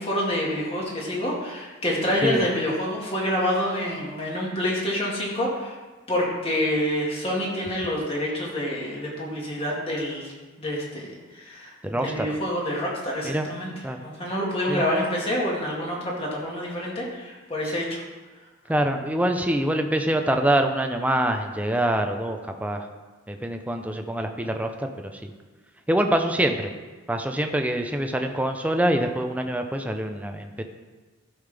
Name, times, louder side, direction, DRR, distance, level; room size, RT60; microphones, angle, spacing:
voice 1, 0.0-5.7 6.1-10.3 10.6-13.7 14.0-18.0, left 1 dB, 30° left, -4 dB, 2.0 m, -27 dB
voice 2, 11.8-12.3 13.2-13.5 13.8-14.0 14.7-14.8 17.7-17.8 18.7-22.9 23.3-24.9 25.2-25.3 25.9-26.7 27.1-30.6, right 1 dB, 5° right, 5 dB, 0.6 m, -25 dB
13.0 x 5.7 x 3.5 m, 1.3 s
head